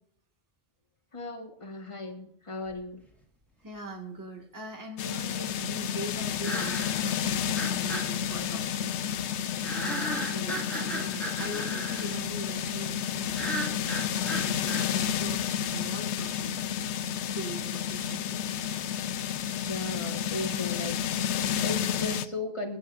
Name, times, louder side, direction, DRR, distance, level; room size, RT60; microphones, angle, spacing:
voice 1, 1.1-3.0 10.3-10.5 19.6-22.8, left 2 dB, 30° left, 2 dB, 1.6 m, -37 dB
sound 1, 2.8-2.9 6.4-7.1 7.6-8.1 9.6-12.2 13.3-14.9, right 1 dB, ahead, 2.1 m, -35 dB
voice 2, 3.6-9.0 9.8-15.4 15.7-16.6 17.3-18.4, right 2 dB, 15° right, 0 dB, 1.8 m, -42 dB
sound 2, 5.0-22.3, left 9 dB, 80° left, 0.9 m, -31 dB
sound 3, 6.3-6.7 7.3-7.4 8.2-8.4 9.1-9.3 10.1-10.3 11.2-11.3 12.2-12.4 13.3-13.7 14.3-14.4 15.3-15.5, right 3 dB, 60° right, 1.8 m, -52 dB
23.5 x 8.9 x 2.6 m, 0.67 s
omnidirectional pair, 1.1 m